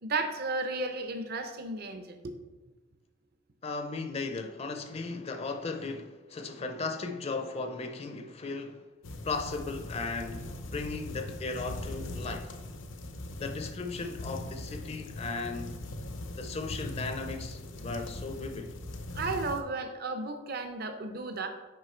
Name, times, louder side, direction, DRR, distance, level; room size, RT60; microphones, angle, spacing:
voice 1, 0.0-2.3 19.1-21.5, right 3 dB, 55° right, 0.7 m, -34 dB
voice 2, 3.6-8.8 9.2-12.5 13.4-15.8 16.4-18.8, left 3 dB, 30° left, 0.5 m, -36 dB
sound 1, 9.0-19.6, left 1 dB, 80° left, 0.6 m, -40 dB
6.3 x 4.9 x 4.4 m
head